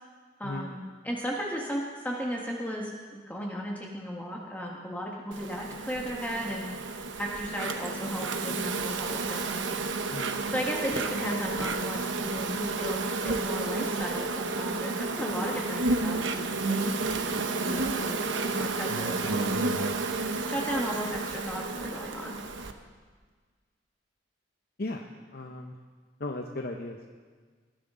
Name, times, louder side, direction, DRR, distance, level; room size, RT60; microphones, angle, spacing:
voice 1, 0.4-0.8 1.0-6.7 7.2-9.5 10.5-16.9 17.4-19.8 20.4-22.4, equal, 10° left, -2 dB, 1.5 m, -35 dB
Insect, 5.3-22.7, right 3 dB, 75° right, 0.9 m, -31 dB
voice 2, 24.8-25.8 26.2-27.1, left 2 dB, 50° left, 3 dB, 0.8 m, -36 dB
19.0 x 13.5 x 3.8 m, 1.5 s
head